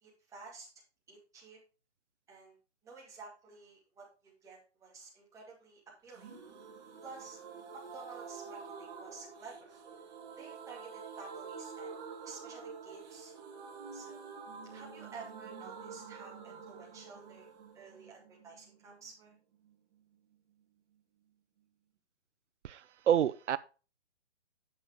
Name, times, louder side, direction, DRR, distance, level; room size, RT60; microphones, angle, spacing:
voice 1, 0.0-0.7 1.1-1.6 2.3-2.6 2.8-6.3 7.0-7.4 7.7-9.7 10.4-13.3 13.9-14.3 14.7-17.5 17.7-19.3, right 4 dB, 10° right, 2.3 m, -52 dB
sound 1, 6.1-19.7 20.0-20.1 20.3-20.4, right 5 dB, 40° right, 2.2 m, -48 dB
voice 2, 22.6-23.6, right 10 dB, 85° right, 0.6 m, -29 dB
8.3 x 6.8 x 3.5 m
hypercardioid pair, 155°, 34 cm